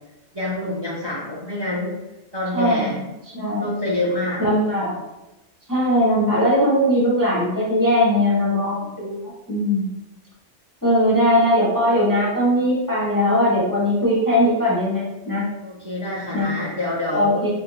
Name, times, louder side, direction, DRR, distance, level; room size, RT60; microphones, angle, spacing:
voice 1, 0.3-2.0 2.3-3.0 3.6-4.4 15.6-17.5, left 1 dB, 30° right, -5 dB, 0.5 m, -26 dB
voice 2, 2.5-3.0 3.3-3.7 4.4-5.0 5.7-9.9 10.8-15.5 16.3-16.6 17.1-17.5, equal, 25° left, -7 dB, 0.6 m, -20 dB
4.5 x 2.1 x 2.6 m, 0.99 s
omnidirectional pair, 1.2 m